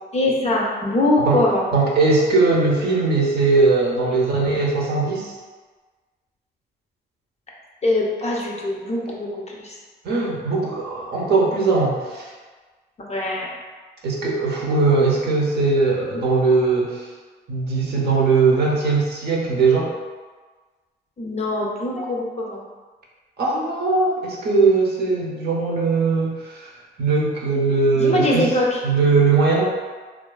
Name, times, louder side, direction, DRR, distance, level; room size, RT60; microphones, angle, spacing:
voice 1, 0.1-1.7 7.8-9.8 13.0-13.5 21.2-22.6 27.9-28.8, left 2 dB, 35° left, -2 dB, 0.5 m, -22 dB
voice 2, 1.7-5.3 10.0-12.3 14.0-17.1 17.5-19.9 23.4-26.7 27.0-28.5 28.8-29.6, right 3 dB, 55° right, -3 dB, 0.6 m, -19 dB
2.4 x 2.3 x 2.3 m, 1.4 s
cardioid pair, 90°, 20 cm